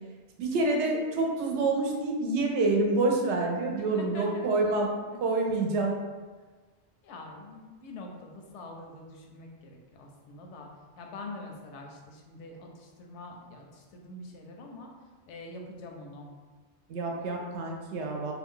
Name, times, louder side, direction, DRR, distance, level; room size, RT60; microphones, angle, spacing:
voice 1, 0.4-6.0 16.9-18.3, right 2 dB, 75° right, 1 dB, 0.8 m, -27 dB
voice 2, 3.8-4.7 5.1-5.2 7.0-10.7 11.0-14.9 15.3-16.3, left 2 dB, 80° left, 1 dB, 0.9 m, -45 dB
2.6 x 2.3 x 3.5 m, 1.3 s
omnidirectional pair, 1.2 m